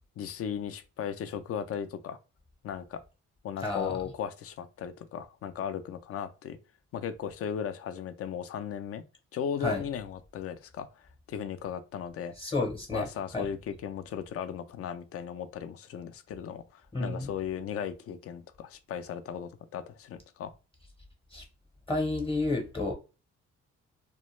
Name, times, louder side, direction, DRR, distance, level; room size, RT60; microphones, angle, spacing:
voice 1, 0.2-2.2 2.6-3.0 3.4-6.6 6.9-9.0 9.3-10.9 11.3-12.3 12.9-20.5, left 8 dB, 50° left, 0.4 m, -36 dB
voice 2, 3.6-3.9 9.6-9.8 12.4-13.1 13.3-13.5 16.9-17.3 21.3-21.4 21.9-22.9, left 2 dB, 20° left, 0.8 m, -30 dB
2.2 x 2.1 x 3.0 m
cardioid pair, 90°, 30 cm